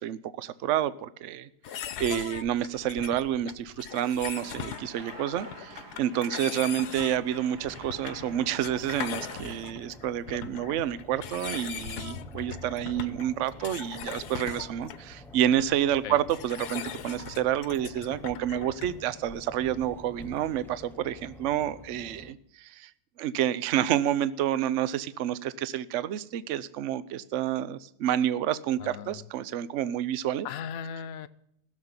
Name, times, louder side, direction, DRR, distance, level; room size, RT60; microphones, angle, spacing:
voice 1, 0.0-1.5 2.0-22.9 23.2-30.5, right 11 dB, 60° right, 16 dB, 0.9 m, -29 dB
sound 1, 1.6-19.1, left 9 dB, 80° left, 1.4 m, -40 dB
voice 2, 1.9-2.3 16.0-16.2 28.8-29.2 30.4-31.3, left 8 dB, 65° left, 13 dB, 1.1 m, -38 dB
sound 2, 4.3-9.6, right 2 dB, 85° right, 2.8 m, -47 dB
sound 3, 7.5-22.3, left 1 dB, ahead, 0.7 m, -49 dB
16.0 x 7.4 x 9.5 m, 0.72 s
omnidirectional pair, 1.7 m